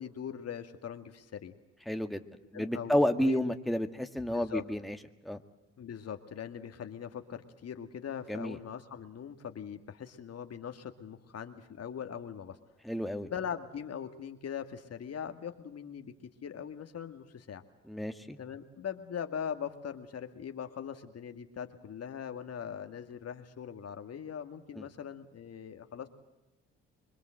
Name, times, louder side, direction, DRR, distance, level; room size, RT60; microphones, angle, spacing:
voice 1, 0.0-1.5 2.5-3.4 4.3-4.6 5.8-12.6 13.2-16.1 16.4-17.6 18.4-26.1, left 8 dB, 55° left, 7 dB, 2.2 m, -41 dB
voice 2, 1.9-2.2 2.5-5.0 5.2-5.4 8.3-8.6 12.8-13.3 17.9-18.4 24.8-24.9, left 1 dB, ahead, 6 dB, 1.8 m, -31 dB
26.0 x 22.0 x 7.8 m, 0.97 s
supercardioid pair, 60°, 31 cm